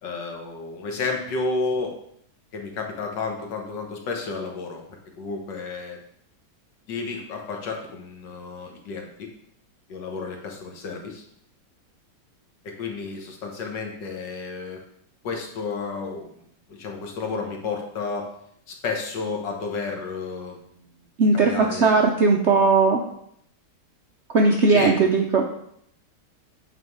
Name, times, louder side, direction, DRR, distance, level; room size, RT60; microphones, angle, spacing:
voice 1, 0.0-1.9 2.5-4.8 5.2-6.0 6.9-9.3 9.9-11.2 12.6-14.8 15.2-16.3 16.7-18.3 18.7-20.6 21.3-22.0 24.7-25.1, left 4 dB, 80° left, 1 dB, 1.8 m, -31 dB
voice 2, 21.2-23.0 24.3-25.5, right 4 dB, 65° right, 1 dB, 0.7 m, -18 dB
8.5 x 3.5 x 4.6 m, 0.70 s
omnidirectional pair, 1.9 m